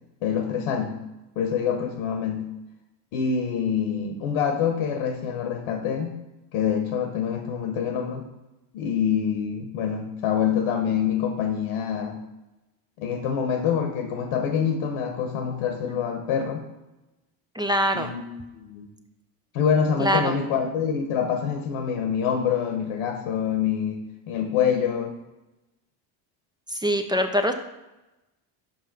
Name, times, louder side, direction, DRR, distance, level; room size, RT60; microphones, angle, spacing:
voice 1, 0.2-1.0 1.4-2.5 3.1-6.2 6.5-8.2 8.7-12.2 13.0-16.6 17.9-18.2 18.5-18.9 19.5-25.1, left 7 dB, 80° left, 4 dB, 1.1 m, -26 dB
voice 2, 17.5-18.1 20.0-20.4 26.7-27.5, equal, 10° right, 6 dB, 0.4 m, -23 dB
5.5 x 5.3 x 5.2 m, 1.0 s
supercardioid pair, 90°, 49 cm